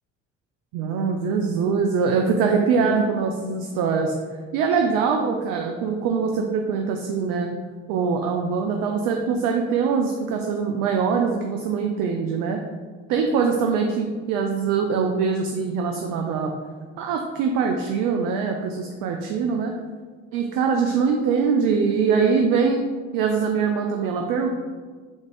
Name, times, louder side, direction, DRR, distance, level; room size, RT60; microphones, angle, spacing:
voice 1, 0.7-4.1 4.5-7.5 7.9-12.6 13.1-16.5 17.0-19.7 20.3-22.8 23.1-24.5, right 5 dB, 65° right, 2 dB, 0.5 m, -23 dB
3.7 x 2.6 x 4.7 m, 1.5 s
hypercardioid pair, 50°, 37 cm